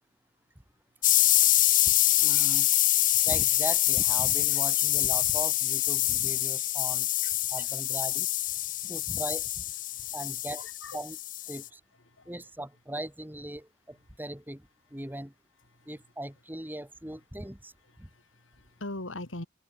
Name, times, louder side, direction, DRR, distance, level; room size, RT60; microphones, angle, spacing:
sound 1, 1.0-11.7, left 15 dB, 45° left, 0.7 m, -25 dB
voice 1, 2.2-2.8 3.2-7.1 7.5-8.3 8.9-9.6 10.1-10.7 10.9-11.2 11.5-11.8 12.3-15.3 15.9-17.7 18.0-18.1, right 1 dB, 10° right, 2.3 m, -39 dB
voice 2, 8.6-8.9 9.9-10.1 10.6-11.0 12.1-12.3 15.7-15.9 17.9-19.5, left 2 dB, 80° left, 3.2 m, -42 dB
head